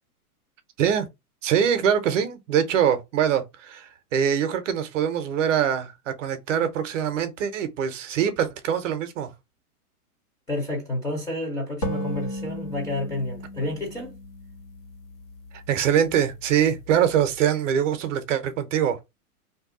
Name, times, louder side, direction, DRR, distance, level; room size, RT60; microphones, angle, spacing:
voice 1, 1.4-9.3 15.5-19.0, right 9 dB, 50° right, 0.6 m, -23 dB
voice 2, 10.5-14.2, left 1 dB, 5° left, 0.6 m, -30 dB
sound 1, 11.8-15.3, equal, 90° left, 1.5 m, -34 dB
2.6 x 2.2 x 3.6 m
hypercardioid pair, 150°, 46 cm